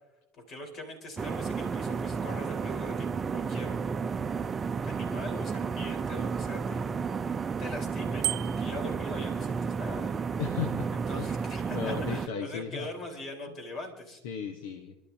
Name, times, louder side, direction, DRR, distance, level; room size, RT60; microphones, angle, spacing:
voice 1, 0.5-3.9 4.8-10.2 10.9-14.2, left 2 dB, 55° left, 3 dB, 4.5 m, -42 dB
sound 1, 1.2-12.3, right 5 dB, 30° right, 0.6 m, -32 dB
Bicycle bell, 8.2-8.8, right 20 dB, 75° right, 0.9 m, -32 dB
voice 2, 10.4-10.9 11.2-11.4 11.7-12.9 14.2-15.0, left 6 dB, 80° left, 6 dB, 1.1 m, -35 dB
28.0 x 12.0 x 2.9 m, 0.94 s
hypercardioid pair, 85°, 0 cm